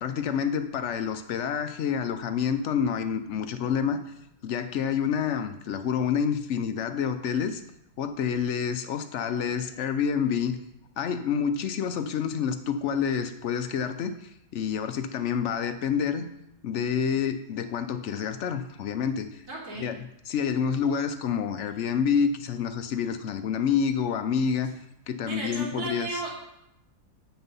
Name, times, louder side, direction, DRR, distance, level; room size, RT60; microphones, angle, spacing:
voice 1, 0.0-4.0 4.4-7.6 8.0-10.6 11.0-16.3 16.6-19.4 19.8-20.0 20.3-24.7 25.1-26.2, left 7 dB, 70° left, 9 dB, 0.7 m, -28 dB
voice 2, 19.5-19.9 25.2-26.3, right 2 dB, 65° right, -4 dB, 3.2 m, -34 dB
8.7 x 6.1 x 5.4 m, 0.83 s
omnidirectional pair, 1.8 m